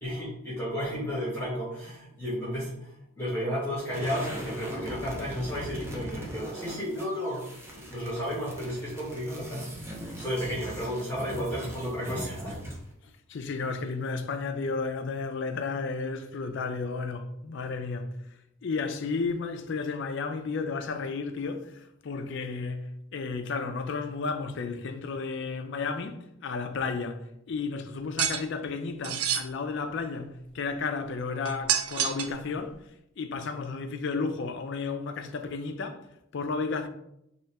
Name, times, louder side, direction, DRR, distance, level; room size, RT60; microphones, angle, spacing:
voice 1, 0.0-9.7 10.2-12.6, equal, 10° left, 1.4 m, -33 dB
sound 1, 3.8-12.9, right 1 dB, 10° right, 0.5 m, -40 dB
voice 2, 13.3-18.1 18.6-32.8 33.2-36.0 36.3-36.9, left 4 dB, 55° left, 0.4 m, -33 dB
sound 2, 28.2-28.4 29.0-29.4 31.4-32.4, right 9 dB, 85° right, 0.4 m, -27 dB
4.1 x 2.8 x 3.4 m
head